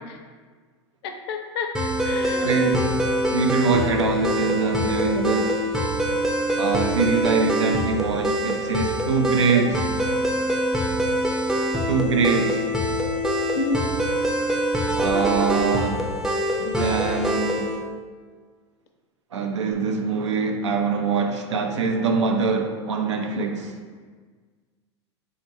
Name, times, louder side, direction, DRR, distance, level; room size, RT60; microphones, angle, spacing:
voice 1, 1.0-1.7 2.0-2.6 13.6-13.8, left 4 dB, 60° left, 5 dB, 0.5 m, -29 dB
sound 1, 1.7-17.8, equal, 5° right, 0.4 m, -24 dB
voice 2, 2.4-2.9 3.3-5.6 6.6-9.9 11.9-12.6 15.0-16.1 16.6-17.7 19.3-23.7, right 5 dB, 80° right, 4 dB, 0.4 m, -23 dB
3.6 x 2.2 x 4.0 m, 1.5 s
hypercardioid pair, 90°, 15 cm